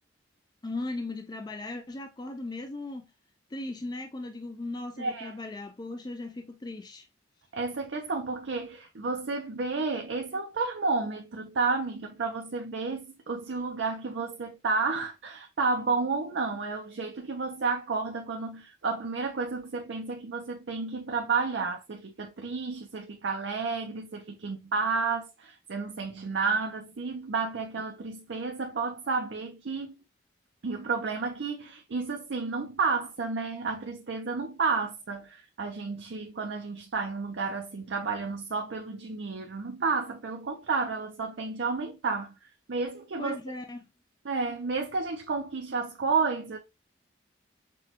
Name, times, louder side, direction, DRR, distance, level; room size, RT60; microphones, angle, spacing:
voice 1, 0.6-3.1 3.5-7.1 43.2-43.8, left 2 dB, 20° left, 0.4 m, -37 dB
voice 2, 5.0-5.3 7.5-30.0 30.6-42.3 42.7-43.4 44.2-46.6, right 4 dB, 70° right, 0.5 m, -31 dB
6.0 x 2.2 x 2.8 m
head